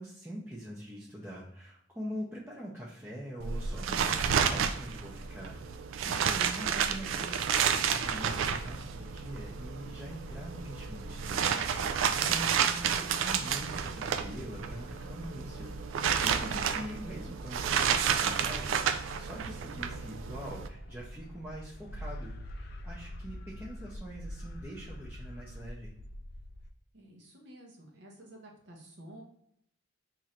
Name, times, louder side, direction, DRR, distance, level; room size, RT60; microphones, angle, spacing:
voice 1, 0.0-11.9 12.1-25.9, equal, 10° right, -7 dB, 0.5 m, -43 dB
sound 1, 3.4-20.7, right 7 dB, 85° right, 0.3 m, -31 dB
sound 2, 7.4-26.7, equal, 55° left, 0.4 m, -47 dB
voice 2, 26.9-29.2, right 1 dB, 60° right, 0 dB, 0.7 m, -51 dB
3.1 x 2.5 x 4.1 m, 0.72 s
head